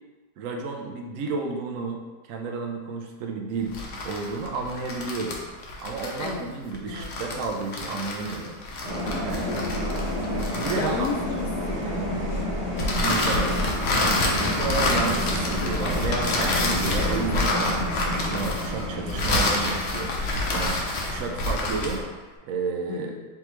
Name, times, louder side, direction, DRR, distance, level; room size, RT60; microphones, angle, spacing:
voice 1, 0.4-2.0 2.3-5.4 5.8-8.8 9.2-9.6 10.6-11.1 13.0-13.6 13.9-20.1 20.5-22.0 22.5-23.1, right 4 dB, 65° right, 2 dB, 0.9 m, -31 dB
sound 1, 3.6-11.4 12.8-22.1, left 2 dB, 55° left, 0.8 m, -28 dB
voice 2, 6.2-6.5 6.9-7.1 9.4-10.3 10.7-12.5 14.4-14.7 22.9-23.2, left 4 dB, 80° left, 2 dB, 1.1 m, -35 dB
sound 2, 8.8-22.0, left 1 dB, 45° right, 1.2 m, -30 dB
4.8 x 3.4 x 3.0 m, 1.3 s
omnidirectional pair, 1.7 m